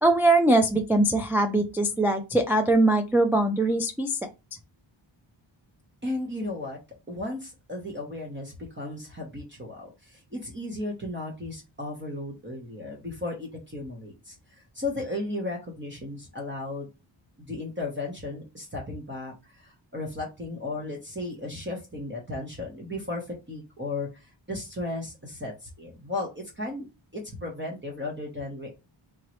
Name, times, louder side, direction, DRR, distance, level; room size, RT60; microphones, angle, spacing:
voice 1, 0.0-4.3, right 2 dB, 5° right, 4 dB, 0.3 m, -22 dB
voice 2, 6.0-6.8 7.1-16.9 17.4-26.9 27.1-28.7, left 2 dB, 25° right, -1 dB, 1.0 m, -35 dB
3.7 x 3.1 x 3.0 m, 0.26 s
wide cardioid pair, 125°, 48 cm